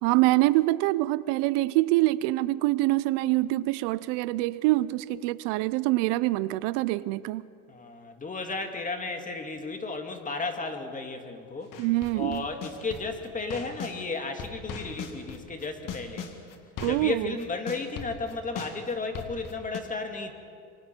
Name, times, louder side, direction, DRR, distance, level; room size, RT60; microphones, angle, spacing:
voice 1, 0.0-7.4 11.8-12.5 16.8-17.3, right 18 dB, 80° right, 0.7 m, -25 dB
voice 2, 7.7-11.7 12.1-16.3 16.8-20.3, left 3 dB, 20° left, 1.9 m, -34 dB
sound 1, 11.7-14.0 14.4-19.8, left 6 dB, 50° left, 2.1 m, -39 dB
27.0 x 25.0 x 4.4 m
cardioid pair, 140°, 41 cm